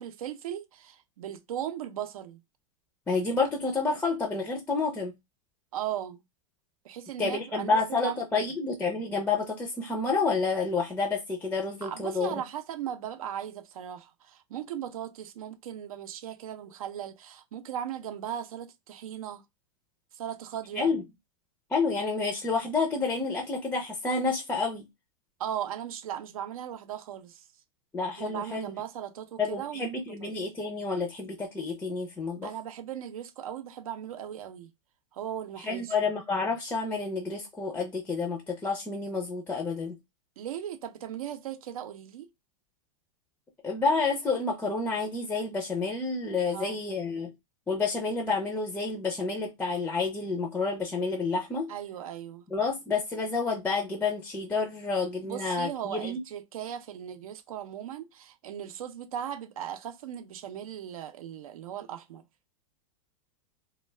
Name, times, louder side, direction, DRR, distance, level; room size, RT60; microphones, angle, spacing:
voice 1, 0.0-2.4 5.7-6.2 6.8-8.5 11.8-19.4 20.2-20.9 25.4-27.4 28.2-29.9 30.2-30.3 32.4-34.7 35.1-35.9 40.4-42.3 46.5-46.8 51.7-52.4 55.2-62.2, right 10 dB, 80° right, 0.6 m, -37 dB
voice 2, 3.1-5.1 7.2-12.4 20.7-21.0 21.7-24.9 27.9-28.7 29.4-32.5 35.6-40.0 43.6-47.3 47.7-51.7 52.5-56.2, left 4 dB, 10° left, 0.4 m, -29 dB
2.2 x 2.2 x 3.2 m
supercardioid pair, 140°, 18 cm